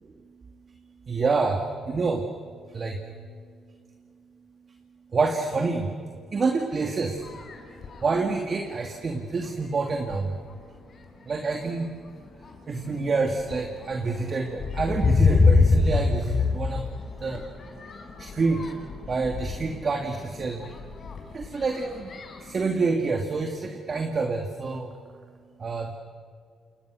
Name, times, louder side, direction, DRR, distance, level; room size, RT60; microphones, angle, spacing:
voice 1, 1.1-2.2 2.7-3.0 5.1-5.9 6.3-7.2 8.0-10.3 11.3-11.9 12.7-16.8 17.2-17.4 18.4-18.6 19.1-20.7 21.3-22.1 22.5-24.9 25.6-25.9, right 4 dB, 40° right, 3 dB, 2.6 m, -27 dB
sound 1, 7.1-8.1 8.8-8.9 9.4-9.7 10.0-10.6 11.3-11.5 11.9-22.6, left 4 dB, 50° left, 5.0 m, -27 dB
29.5 x 26.5 x 6.6 m, 2.2 s
cardioid pair, 90°, 0 cm